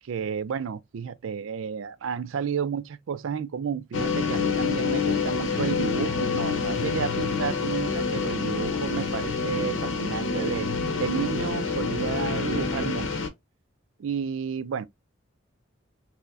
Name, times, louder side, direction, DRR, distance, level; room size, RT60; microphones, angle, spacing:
voice 1, 0.0-10.7 11.0-13.2 14.0-14.9, right 6 dB, 75° right, 0.4 m, -31 dB
sound 1, 3.9-13.3, left 5 dB, 75° left, 0.8 m, -27 dB
4.5 x 2.1 x 2.5 m
head